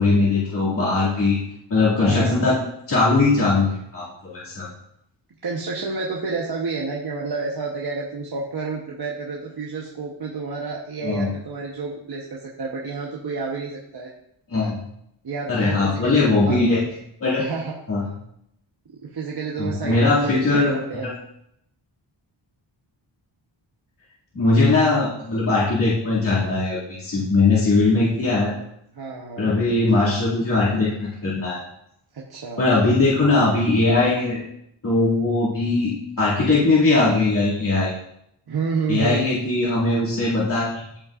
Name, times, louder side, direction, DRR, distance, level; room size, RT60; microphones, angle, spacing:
voice 1, 0.0-1.4 1.7-2.6 2.9-4.7 11.0-11.3 14.5-14.8 15.5-16.8 17.2-17.4 17.9-18.0 19.6-20.7 21.0-21.1 24.3-28.5 29.4-31.6 32.6-34.4 34.8-37.9 38.9-40.8, left 3 dB, 45° left, -10 dB, 2.3 m, -20 dB
voice 2, 2.0-2.4 5.4-14.1 15.2-16.6 17.4-17.8 19.0-21.1 28.9-29.5 32.1-32.6 38.5-39.3, right 4 dB, 50° right, -2 dB, 1.0 m, -30 dB
13.5 x 5.5 x 2.4 m, 0.75 s
wide cardioid pair, 150°, 47 cm